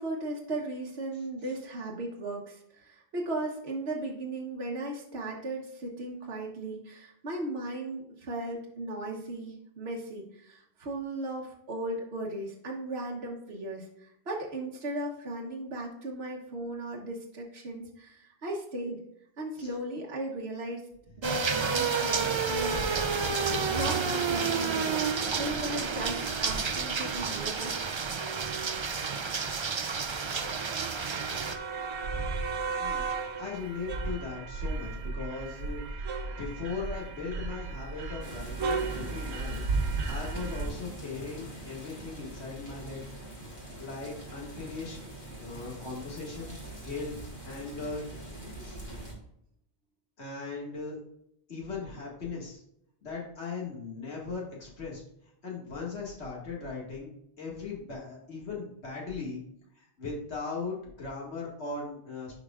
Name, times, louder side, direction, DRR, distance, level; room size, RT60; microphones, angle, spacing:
voice 1, 0.0-19.0 19.4-20.8 21.2-23.0 23.7-25.0 25.4-27.7, right 2 dB, 70° right, -2 dB, 1.4 m, -37 dB
sound 1, 21.2-31.6, right 5 dB, 40° right, 0.5 m, -30 dB
sound 2, 21.3-40.7, right 4 dB, 90° right, 1.1 m, -36 dB
voice 2, 32.8-33.1 33.4-35.8 36.4-39.6 40.1-43.0 43.8-45.0 45.4-46.6 46.8-47.1 47.4-48.1 48.6-48.8 50.2-51.0 51.5-52.6 53.0-55.0 55.4-57.1 57.4-59.4 59.8-62.3, left 4 dB, 90° left, -3 dB, 2.2 m, -38 dB
sound 3, 38.2-49.1, right 1 dB, 25° left, 2.6 m, -44 dB
11.0 x 4.9 x 2.4 m, 0.75 s
omnidirectional pair, 1.1 m